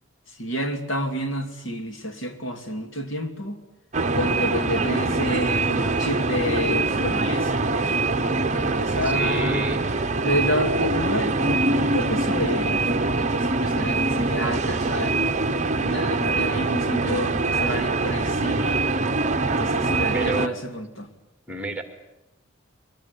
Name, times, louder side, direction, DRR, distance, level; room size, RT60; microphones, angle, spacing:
voice 1, 0.4-3.6 4.1-7.6 8.1-9.8 10.2-15.2 15.7-18.8 19.4-21.1, equal, 65° left, 5 dB, 2.8 m, -29 dB
sound 1, 3.9-20.5, right 3 dB, 35° right, 0.9 m, -24 dB
voice 2, 4.8-5.4 9.0-9.8 20.1-20.6 21.5-21.8, right 2 dB, 5° right, 6 dB, 2.3 m, -30 dB
23.5 x 20.0 x 9.8 m, 0.92 s
head